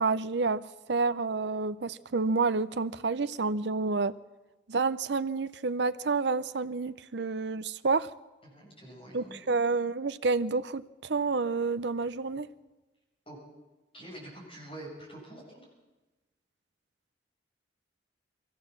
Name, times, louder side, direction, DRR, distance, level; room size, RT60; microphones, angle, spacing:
voice 1, 0.0-4.2 4.7-8.1 9.1-12.5, right 4 dB, 65° right, 0.7 m, -29 dB
voice 2, 8.5-9.6 13.3-13.4 13.9-15.7, right 1 dB, 30° left, 7.6 m, -46 dB
22.5 x 16.0 x 7.4 m
head